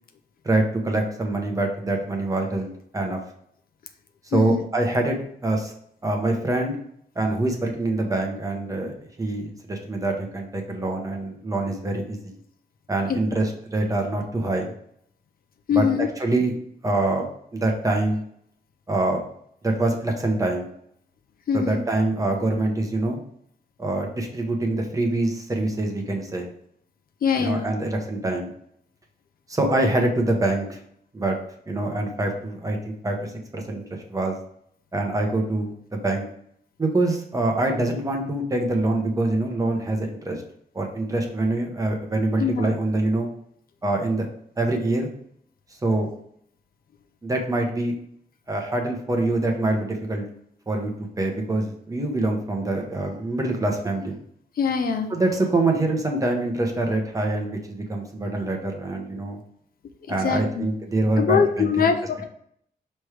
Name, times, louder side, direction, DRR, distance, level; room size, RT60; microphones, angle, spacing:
voice 1, 0.4-3.2 4.3-5.2 5.4-5.7 6.0-6.8 7.1-12.3 12.9-14.7 15.7-15.9 16.2-16.5 16.8-17.2 17.5-18.2 18.9-19.2 19.6-20.7 21.5-23.2 23.8-26.5 27.3-28.5 29.5-30.8 31.1-31.4 31.7-34.4 34.9-36.2 36.8-40.4 40.7-43.3 43.8-44.3 44.6-45.1 45.8-46.1 47.2-47.9 48.5-50.3 50.7-54.2 55.1-59.4 60.1-61.9, right 2 dB, 20° right, 2 dB, 1.0 m, -25 dB
voice 2, 4.3-4.6 13.1-13.2 15.7-16.1 21.5-21.8 27.2-27.7 42.4-42.7 54.6-55.1 60.1-60.7 61.2-62.2, left 6 dB, 65° left, 7 dB, 0.7 m, -23 dB
6.1 x 3.2 x 4.9 m, 0.67 s
wide cardioid pair, 175°, 16 cm